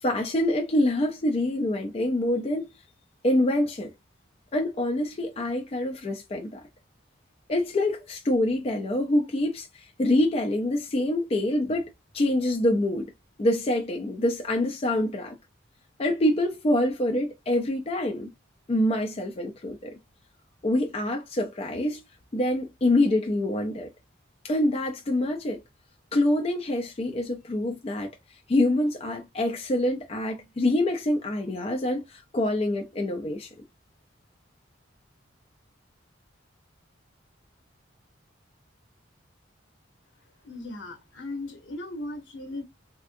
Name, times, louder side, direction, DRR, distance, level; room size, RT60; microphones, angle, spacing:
voice 1, 0.0-2.7 3.2-3.9 4.5-6.6 7.5-13.1 13.4-15.4 16.0-18.3 18.7-19.9 20.6-22.0 22.3-23.9 24.4-25.6 26.1-28.1 28.5-33.5, left 1 dB, 30° left, 0.3 m, -26 dB
voice 2, 40.4-42.6, left 2 dB, 70° left, 0.9 m, -37 dB
3.4 x 2.5 x 2.5 m
head